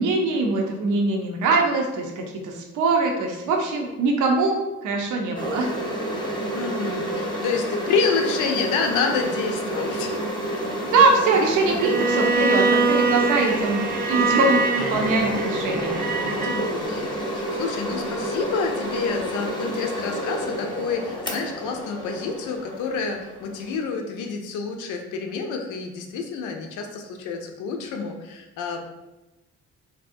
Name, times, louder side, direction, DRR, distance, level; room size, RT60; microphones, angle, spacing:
voice 1, 0.0-4.6 4.8-5.7 10.9-13.8 14.1-16.1, right 3 dB, 80° right, 1 dB, 0.6 m, -22 dB
sound 1, 5.3-23.8, right 1 dB, 15° left, 0.7 m, -30 dB
voice 2, 6.5-10.2 16.2-28.8, left 4 dB, 90° left, 3 dB, 0.5 m, -28 dB
Bowed string instrument, 11.8-16.7, right 4 dB, 30° right, 0.4 m, -24 dB
3.3 x 2.6 x 2.5 m, 1.0 s
cardioid pair, 90°, 30 cm